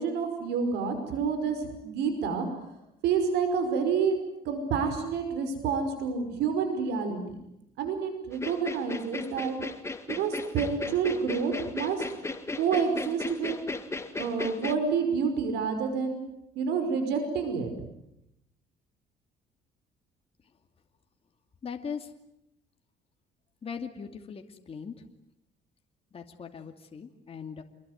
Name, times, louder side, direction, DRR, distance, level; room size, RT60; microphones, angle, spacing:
voice 1, 0.0-2.5 3.0-4.2 4.4-7.4 7.8-9.6 10.1-12.1 12.6-13.5 14.2-16.2 16.6-17.7, right 6 dB, 80° right, 8 dB, 5.4 m, -28 dB
sound 1, 8.3-14.8, left 3 dB, 15° left, 2.2 m, -36 dB
voice 2, 21.6-22.1 23.6-24.4 24.7-24.9 26.1-27.6, left 6 dB, 35° left, 4 dB, 2.6 m, -39 dB
27.5 x 22.0 x 9.5 m, 0.84 s
cardioid pair, 110°, 17 cm